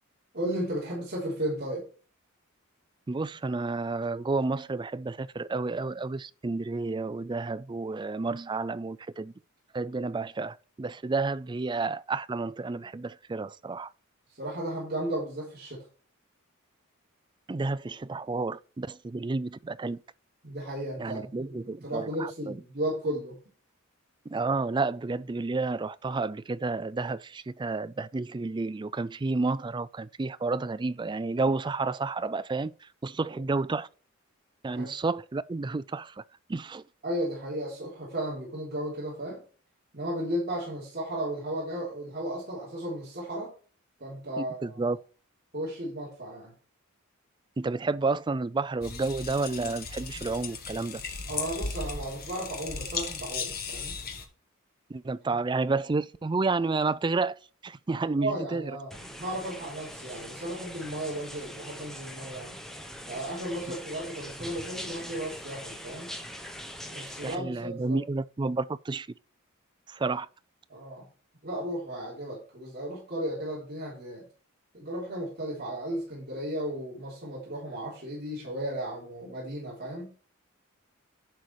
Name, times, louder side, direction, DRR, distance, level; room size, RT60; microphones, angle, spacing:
voice 1, 0.3-1.9 14.4-15.8 20.4-23.4 34.7-34.8 37.0-39.4 39.9-43.5 44.0-44.8 45.5-46.5 51.3-54.0 55.3-55.4 58.2-62.6 63.1-66.1 66.8-68.0 70.7-71.1 71.4-74.3 74.7-80.1, right 1 dB, 45° right, 3.7 m, -34 dB
voice 2, 3.1-9.3 9.7-13.9 17.5-20.0 21.0-22.6 24.3-33.9 34.6-36.2 36.5-36.8 44.4-45.0 47.6-51.0 54.9-58.7 67.2-69.1 69.9-70.3, right 3 dB, 20° right, 0.3 m, -31 dB
sound 1, 48.8-54.3, left 5 dB, 45° left, 1.6 m, -36 dB
sound 2, 58.9-67.4, equal, ahead, 1.0 m, -42 dB
10.5 x 5.4 x 4.8 m
head